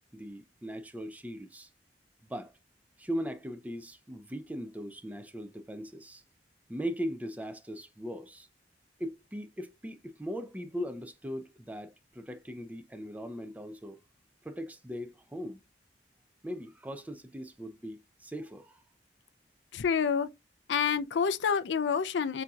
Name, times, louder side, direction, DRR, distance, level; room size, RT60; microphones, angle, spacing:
voice 1, 0.1-1.7 2.3-2.5 3.0-6.2 6.7-8.5 9.0-14.0 14.4-15.6 16.4-18.8, equal, 10° right, 0.5 m, -39 dB
voice 2, 19.7-20.3 20.7-22.4, left 6 dB, 80° left, 0.4 m, -28 dB
7.3 x 2.7 x 2.3 m
head